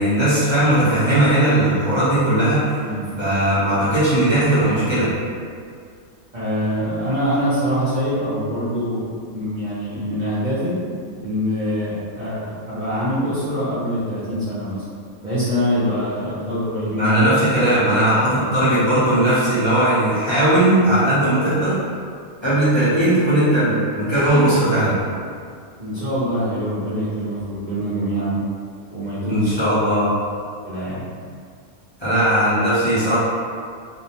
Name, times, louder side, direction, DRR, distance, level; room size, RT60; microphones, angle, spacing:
voice 1, 0.0-2.6 3.2-5.1 17.0-21.8 22.4-24.9 29.3-30.1 32.0-33.2, right 1 dB, 30° left, -14 dB, 0.5 m, -18 dB
voice 2, 6.3-9.1 9.3-10.7 11.2-14.8 15.2-17.3 17.7-18.5 25.8-28.4 28.9-29.6 30.6-31.0, equal, 50° right, -13 dB, 0.5 m, -24 dB
2.6 x 2.0 x 2.8 m, 2.2 s
omnidirectional pair, 1.4 m